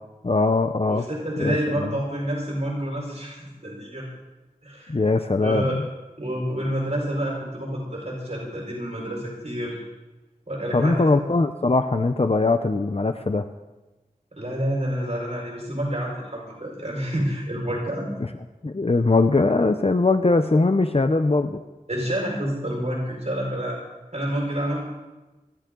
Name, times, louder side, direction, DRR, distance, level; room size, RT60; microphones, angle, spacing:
voice 1, 0.2-1.1 1.4-2.0 4.9-5.9 10.7-13.4 18.6-21.6, left 3 dB, 40° left, 8 dB, 0.8 m, -21 dB
voice 2, 0.9-4.1 4.6-4.9 5.4-5.8 6.2-9.8 10.5-11.1 14.3-18.1 21.9-23.8 24.1-24.8, equal, 45° right, -3 dB, 5.3 m, -28 dB
26.5 x 12.0 x 3.9 m, 1.1 s
wide cardioid pair, 50°, 15 cm